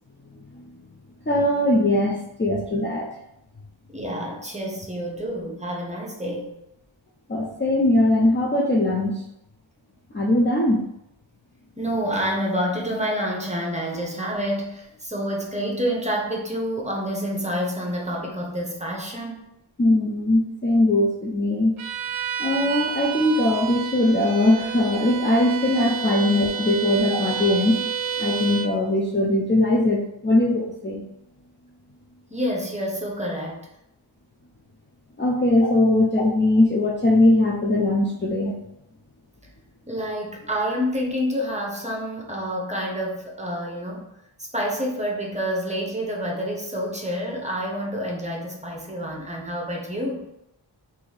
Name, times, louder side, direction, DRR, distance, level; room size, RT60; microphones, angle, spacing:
voice 1, 1.3-3.1 7.3-9.2 10.1-10.9 19.8-21.8 22.4-27.8 28.2-31.0 35.2-38.6, left 1 dB, 25° left, -3 dB, 0.5 m, -20 dB
voice 2, 3.9-6.5 11.8-19.4 25.8-25.9 32.3-33.7 39.9-44.1 44.5-50.3, equal, 15° right, -2 dB, 0.9 m, -28 dB
Bowed string instrument, 21.8-28.8, right 8 dB, 80° right, 0.5 m, -30 dB
2.8 x 2.7 x 4.0 m, 0.84 s
wide cardioid pair, 50°, 49 cm